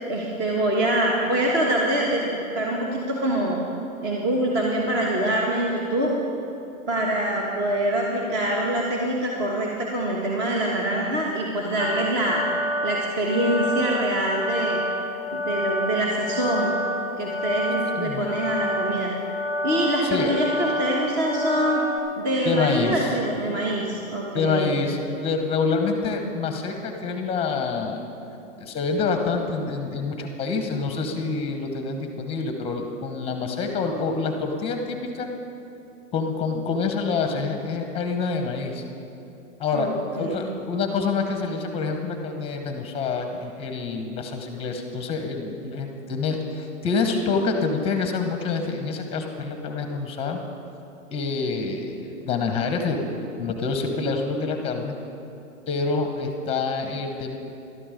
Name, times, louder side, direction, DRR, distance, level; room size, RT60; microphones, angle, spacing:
voice 1, 0.1-3.6 4.0-6.1 6.9-12.4 12.8-14.8 15.3-16.7 17.2-19.1 19.6-21.8 22.2-24.7 39.7-40.5, right 1 dB, 25° right, -2 dB, 1.4 m, -25 dB
sound 1, 11.8-22.0, left 1 dB, 10° right, 1.3 m, -28 dB
voice 2, 20.0-20.3 22.4-23.1 24.3-28.0 28.6-35.3 36.1-38.8 39.6-50.4 51.1-53.0 53.4-54.9 55.7-57.4, left 4 dB, 15° left, 5 dB, 1.1 m, -27 dB
12.5 x 12.5 x 5.2 m, 2.9 s
hypercardioid pair, 140°, 41 cm